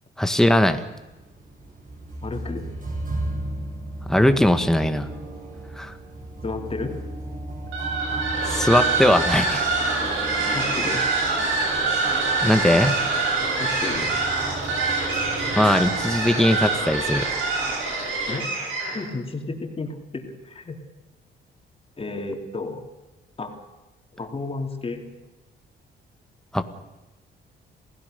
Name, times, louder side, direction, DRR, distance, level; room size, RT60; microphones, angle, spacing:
voice 1, 0.2-0.8 4.1-5.1 5.8-5.9 8.5-9.7 12.4-13.0 15.6-17.3 26.5-26.6, left 1 dB, ahead, 8 dB, 1.8 m, -20 dB
sound 1, 1.0-16.8, right 1 dB, 45° right, 7.5 m, -35 dB
voice 2, 2.2-2.7 6.4-6.9 10.5-11.1 13.6-14.1 18.3-18.5 18.9-20.8 22.0-22.8 23.4-23.5 24.2-25.0, left 3 dB, 30° left, 3 dB, 3.6 m, -32 dB
sound 2, 7.7-19.1, right 3 dB, 90° right, 7.8 m, -25 dB
27.5 x 16.5 x 6.9 m, 1.1 s
cardioid pair, 90°, 20 cm